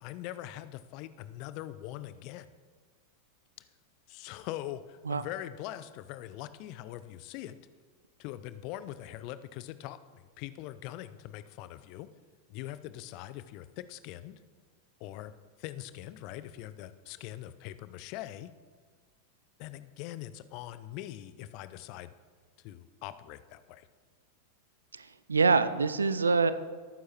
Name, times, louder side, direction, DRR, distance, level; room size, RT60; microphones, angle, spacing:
voice 1, 0.0-2.5 3.6-3.7 4.1-7.6 8.2-12.1 12.5-14.4 15.0-15.3 15.6-18.5 19.6-22.1 22.6-23.9, left 13 dB, 45° left, 13 dB, 0.5 m, -42 dB
voice 2, 25.0-26.5, right 4 dB, 75° right, 13 dB, 0.5 m, -25 dB
18.0 x 9.3 x 2.9 m, 1.5 s
figure-of-eight pair, 90°, 0 cm